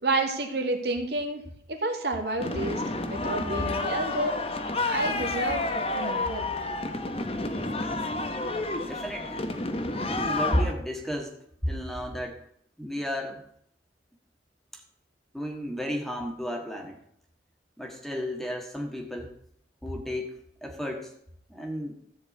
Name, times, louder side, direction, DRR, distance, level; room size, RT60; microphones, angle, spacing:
voice 1, 0.0-1.4 1.7-2.8 3.1-4.4 4.8-5.7 5.9-6.5, right 2 dB, 65° right, 4 dB, 2.0 m, -30 dB
sound 1, 2.4-10.7, left 2 dB, 35° left, 1.0 m, -30 dB
voice 2, 8.8-9.5 10.1-11.3 11.6-12.4 12.8-13.4 14.7-14.8 15.3-17.0 17.8-19.3 19.8-21.1 21.5-21.9, equal, ahead, 2 dB, 1.6 m, -32 dB
14.0 x 4.8 x 8.5 m, 0.69 s
head